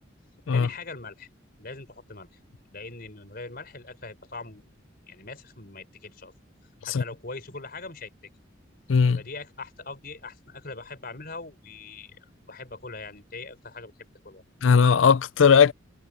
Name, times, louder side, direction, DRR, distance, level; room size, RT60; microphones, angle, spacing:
voice 1, 0.5-1.3 1.6-2.4 2.7-4.7 5.1-6.3 6.8-8.1 9.1-12.2 12.5-14.4, left 3 dB, 50° left, 4.7 m, -41 dB
voice 2, 8.9-9.2 14.6-15.7, left 6 dB, 85° left, 0.5 m, -18 dB
head